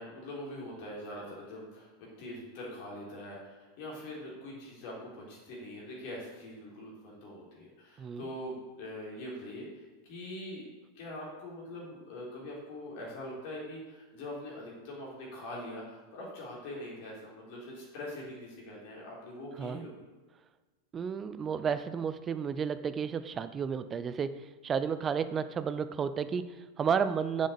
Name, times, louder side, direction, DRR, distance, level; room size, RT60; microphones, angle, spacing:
voice 1, 0.0-10.7 10.9-20.0, left 1 dB, 45° left, -4 dB, 3.9 m, -43 dB
voice 2, 20.9-27.5, right 6 dB, 20° right, 12 dB, 0.6 m, -32 dB
8.5 x 7.5 x 7.0 m, 1.3 s
figure-of-eight pair, 90°, 0 cm